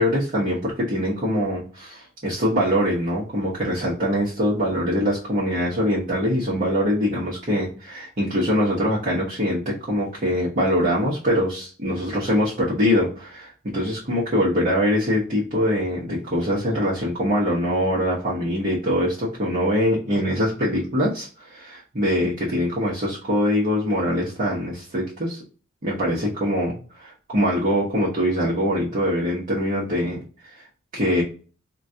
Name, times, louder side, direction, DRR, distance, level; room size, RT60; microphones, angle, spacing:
voice 1, 0.0-25.4 25.8-30.2 30.6-30.7 30.9-31.2, equal, 40° right, -6 dB, 0.9 m, -23 dB
3.8 x 2.3 x 2.7 m, 0.38 s
head